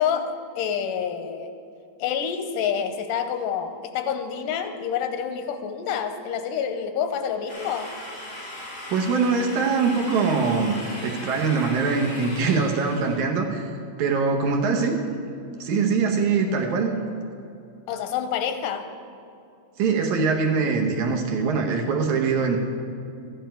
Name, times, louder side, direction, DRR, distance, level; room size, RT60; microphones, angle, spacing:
voice 1, 0.0-1.5 2.0-7.9 17.9-18.9, left 8 dB, 90° left, 7 dB, 2.4 m, -27 dB
sound 1, 7.5-13.2, left 1 dB, 30° left, 3.4 m, -38 dB
voice 2, 8.9-10.8 11.0-13.7 14.0-15.0 15.6-16.9 19.8-22.6, right 4 dB, 70° right, 1 dB, 2.2 m, -23 dB
13.5 x 10.5 x 4.5 m, 2.6 s
omnidirectional pair, 3.8 m